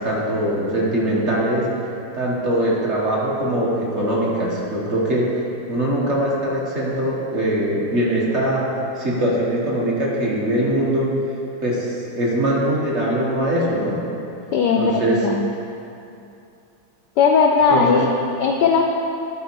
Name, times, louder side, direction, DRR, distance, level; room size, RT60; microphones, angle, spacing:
voice 1, 0.0-1.7 2.1-5.4 5.7-8.7 8.9-11.1 11.6-14.0 14.7-15.2 17.7-18.0, right 1 dB, 40° right, -5 dB, 1.3 m, -22 dB
voice 2, 14.5-15.5 17.2-18.1 18.4-18.8, left 5 dB, 75° left, 2 dB, 1.0 m, -17 dB
11.5 x 4.8 x 4.5 m, 2.7 s
omnidirectional pair, 2.3 m